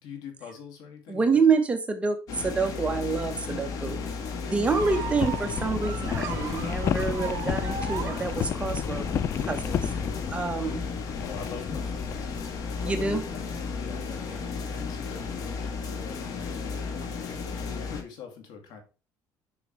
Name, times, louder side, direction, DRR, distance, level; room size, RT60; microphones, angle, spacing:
voice 1, 0.0-1.5 11.2-18.8, left 7 dB, 75° left, 4 dB, 2.6 m, -44 dB
voice 2, 1.1-4.0 4.4-9.1 9.4-10.9 12.8-13.2 14.3-14.4, right 4 dB, 15° right, 5 dB, 1.2 m, -27 dB
sound 1, 2.3-18.0, left 5 dB, 55° left, 1.8 m, -34 dB
sound 2, 4.6-13.8, left 8 dB, 40° left, 0.5 m, -33 dB
sound 3, 4.7-8.8, right 6 dB, 50° right, 1.7 m, -37 dB
7.0 x 5.9 x 3.3 m, 0.33 s
cardioid pair, 135°, 7 cm